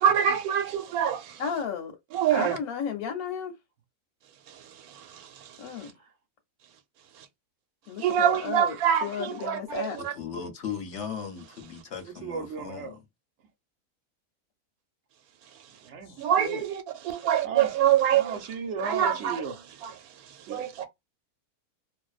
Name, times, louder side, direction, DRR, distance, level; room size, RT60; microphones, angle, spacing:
voice 1, 0.0-1.4 2.1-2.6 4.5-5.5 8.0-10.1 16.2-18.4 18.8-19.4 20.5-20.9, right 9 dB, 85° right, 1.1 m, -25 dB
voice 2, 1.4-2.0 2.3-3.5 5.6-5.9 7.9-10.0 16.1-16.6, left 7 dB, 85° left, 1.1 m, -34 dB
voice 3, 10.0-13.0, left 7 dB, 60° left, 0.8 m, -37 dB
voice 4, 12.0-13.0 15.8-16.2 17.4-17.7 18.1-19.5 20.5-20.9, right 5 dB, 60° right, 0.9 m, -35 dB
2.5 x 2.1 x 2.3 m
omnidirectional pair, 1.5 m